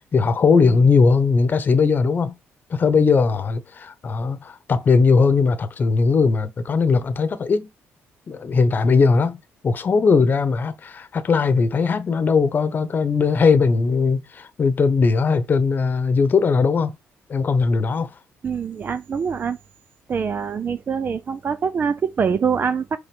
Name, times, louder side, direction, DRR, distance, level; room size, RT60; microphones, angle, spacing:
voice 1, 0.1-2.3 2.7-7.7 8.3-9.4 9.6-16.9 17.3-18.1, left 4 dB, 40° left, 1.0 m, -19 dB
voice 2, 18.4-19.6 20.1-23.0, right 6 dB, 40° right, 0.5 m, -24 dB
5.9 x 3.8 x 5.3 m
cardioid pair, 100°, 5 cm